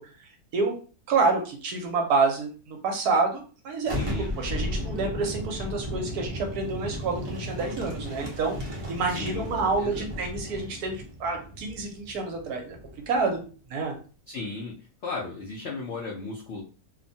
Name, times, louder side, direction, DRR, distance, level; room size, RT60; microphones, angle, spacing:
voice 1, 1.1-12.8 13.1-13.4 13.7-13.9, right 4 dB, 70° right, 3 dB, 1.1 m, -28 dB
Boom, 3.8-13.4, equal, 35° right, 0.5 m, -35 dB
voice 2, 3.9-4.3 9.1-10.1 14.3-14.7 15.0-16.6, left 3 dB, 75° left, -3 dB, 0.6 m, -35 dB
2.9 x 2.1 x 2.6 m, 0.37 s
omnidirectional pair, 1.9 m